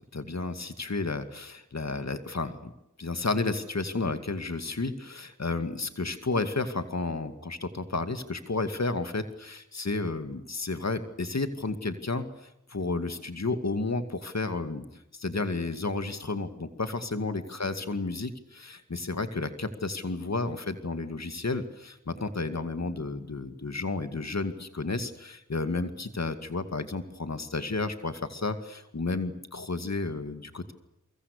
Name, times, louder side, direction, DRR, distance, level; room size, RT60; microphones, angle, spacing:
voice 1, 0.1-2.7 3.0-30.7, left 3 dB, 60° left, 9 dB, 2.3 m, -32 dB
29.0 x 24.0 x 6.8 m, 0.85 s
cardioid pair, 45°, 31 cm